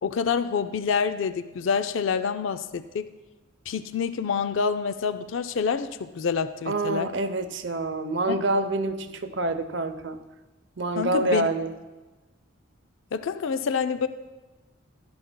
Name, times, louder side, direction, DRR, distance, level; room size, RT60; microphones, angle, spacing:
voice 1, 0.0-3.1 3.7-7.1 8.3-8.4 11.0-11.5 13.1-14.1, left 6 dB, 65° left, 11 dB, 0.4 m, -27 dB
voice 2, 6.7-10.2 10.8-11.7, right 2 dB, 60° right, 10 dB, 0.7 m, -27 dB
15.0 x 12.0 x 2.2 m, 1.2 s
head